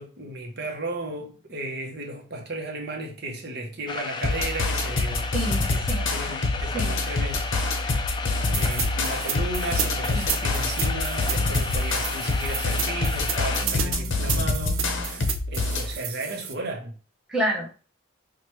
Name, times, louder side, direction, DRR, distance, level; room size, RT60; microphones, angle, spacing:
voice 1, 0.0-5.3 5.7-5.8 6.1-7.9 8.5-17.0, right 2 dB, 55° right, 0.8 m, -35 dB
sound 1, 3.9-13.7, left 4 dB, 20° left, 0.3 m, -33 dB
sound 2, 4.2-15.9, left 2 dB, 75° left, 0.7 m, -26 dB
voice 2, 5.3-6.1 6.7-7.0 10.1-10.4 13.6-15.2 17.3-17.7, right 1 dB, 5° right, 0.7 m, -31 dB
sound 3, 8.5-16.5, right 8 dB, 90° right, 0.5 m, -32 dB
4.7 x 2.2 x 3.0 m
head